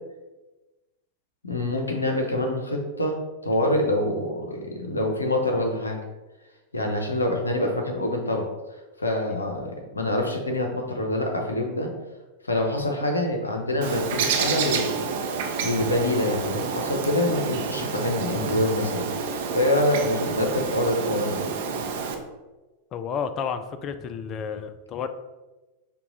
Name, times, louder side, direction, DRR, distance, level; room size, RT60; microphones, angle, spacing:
voice 1, 1.4-3.2 3.4-6.0 6.7-8.5 9.0-11.9 12.4-15.0 15.6-19.1 19.5-21.5, left 1 dB, 80° left, 2 dB, 0.7 m, -25 dB
Bird, 13.8-22.1, right 5 dB, 55° right, 0.6 m, -29 dB
voice 2, 22.9-25.1, left 7 dB, 30° left, 9 dB, 0.4 m, -31 dB
5.5 x 2.3 x 3.8 m, 1.1 s
figure-of-eight pair, 90°, 0 cm